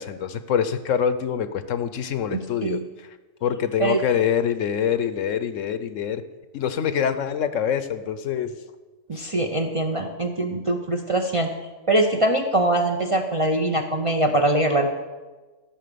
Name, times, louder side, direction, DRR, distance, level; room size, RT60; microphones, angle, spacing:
voice 1, 0.0-3.1 3.4-6.2 6.5-8.5 9.1-9.3, left 8 dB, 70° left, 12 dB, 1.0 m, -25 dB
voice 2, 2.3-2.8 3.8-4.0 9.1-11.5 11.9-14.9, right 1 dB, 35° right, 3 dB, 0.6 m, -22 dB
13.0 x 5.9 x 6.8 m, 1.2 s
omnidirectional pair, 1.4 m